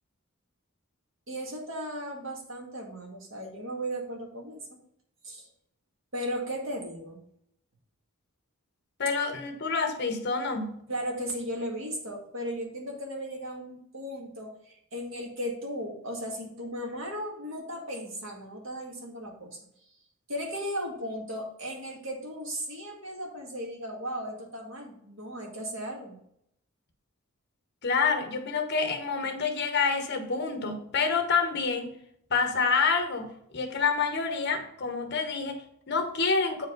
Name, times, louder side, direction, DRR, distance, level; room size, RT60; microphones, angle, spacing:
voice 1, 1.3-4.7 5.2-5.5 6.1-7.2 10.9-19.6 20.3-26.2, equal, 65° right, 0 dB, 1.9 m, -36 dB
voice 2, 9.0-10.8 27.8-31.9 32.3-36.7, left 5 dB, 55° left, 6 dB, 1.1 m, -28 dB
8.2 x 5.0 x 3.9 m, 0.73 s
head